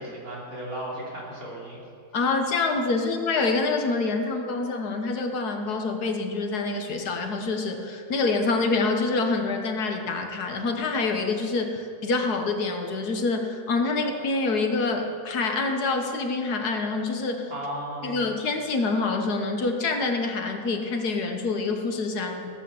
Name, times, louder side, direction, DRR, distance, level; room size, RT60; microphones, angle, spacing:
voice 1, 0.0-1.8 17.5-18.2, right 1 dB, 65° right, -4 dB, 3.6 m, -35 dB
voice 2, 2.1-17.5 18.0-22.5, left 3 dB, 75° left, 4 dB, 1.8 m, -26 dB
16.0 x 8.4 x 7.1 m, 2.4 s
omnidirectional pair, 1.7 m